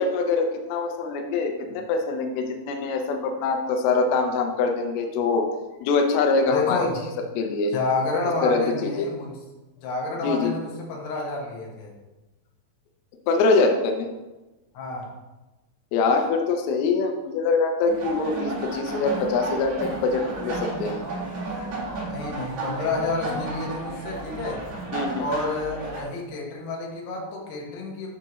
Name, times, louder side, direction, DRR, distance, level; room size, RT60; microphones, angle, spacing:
voice 1, 0.0-5.5 5.8-6.9 7.4-7.7 8.2-9.1 10.2-10.5 13.3-14.1 15.9-21.0 24.9-25.3, left 4 dB, 85° left, 3 dB, 2.2 m, -24 dB
voice 2, 6.5-7.1 7.7-9.3 9.8-11.9 14.7-15.1 22.1-24.6 25.2-28.1, left 3 dB, 70° left, -1 dB, 3.2 m, -29 dB
sound 1, 17.8-26.0, right 3 dB, 50° right, 3.0 m, -33 dB
10.5 x 5.7 x 3.1 m, 1.1 s
omnidirectional pair, 5.4 m